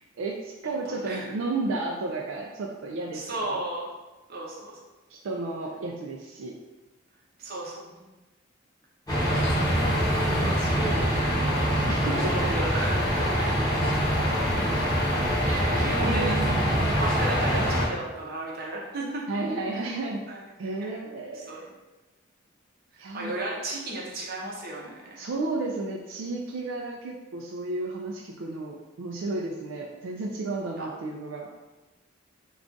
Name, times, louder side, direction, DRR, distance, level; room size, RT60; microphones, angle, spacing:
voice 1, 0.2-3.5 5.1-6.5 10.1-11.2 11.9-12.3 13.2-13.5 15.4-17.0 19.3-20.2 20.6-21.6 23.0-23.3 25.2-31.5, right 2 dB, 85° right, 0 dB, 0.3 m, -33 dB
voice 2, 0.9-1.3 3.1-3.9 4.3-4.8 7.4-8.0 9.8-11.4 12.1-13.0 13.3-13.8 15.1-15.5 15.8-16.4 17.0-19.2 20.3-20.5 20.8-21.0 21.3-21.6 23.1-25.2 30.8-30.9, right 2 dB, 50° right, -3 dB, 0.6 m, -35 dB
sound 1, 9.1-17.9, equal, 20° left, 0.7 m, -24 dB
2.3 x 2.3 x 3.8 m, 1.1 s
head